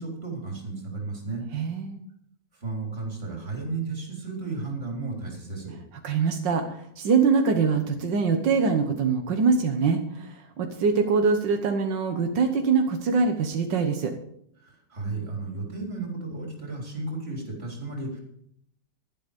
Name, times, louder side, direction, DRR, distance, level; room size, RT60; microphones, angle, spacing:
voice 1, 0.0-1.4 2.5-5.7 14.6-18.2, right 3 dB, 35° right, -1 dB, 4.1 m, -33 dB
voice 2, 1.5-2.0 6.0-14.1, right 5 dB, 85° right, 5 dB, 1.9 m, -24 dB
12.5 x 11.5 x 5.2 m, 0.70 s
omnidirectional pair, 1.9 m